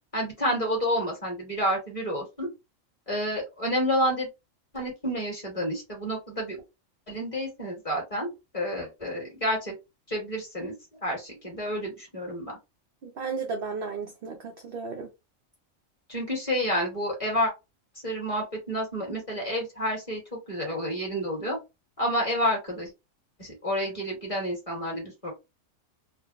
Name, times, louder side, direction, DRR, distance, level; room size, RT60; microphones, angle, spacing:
voice 1, 0.1-2.5 3.1-4.3 4.7-6.6 7.1-9.7 10.1-10.7 11.0-12.6 16.1-17.5 18.0-21.6 22.0-22.9 23.4-25.3, equal, 25° left, 1.5 m, -29 dB
voice 2, 13.0-15.1, right 4 dB, 60° right, 0.6 m, -34 dB
3.3 x 2.2 x 2.4 m
omnidirectional pair, 1.4 m